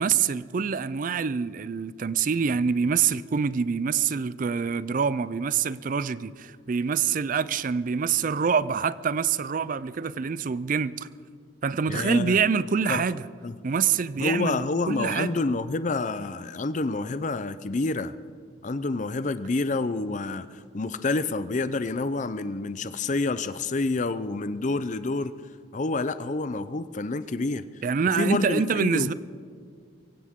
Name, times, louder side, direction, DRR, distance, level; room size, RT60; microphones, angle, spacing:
voice 1, 0.0-11.1 11.6-13.2 13.6-15.3 27.8-29.1, right 6 dB, 45° right, 0.4 m, -26 dB
voice 2, 11.9-12.4 12.9-13.0 13.4-13.6 14.2-18.1 18.6-25.3 25.7-27.6 28.1-29.1, left 3 dB, 40° left, 0.5 m, -28 dB
23.0 x 16.0 x 3.7 m
head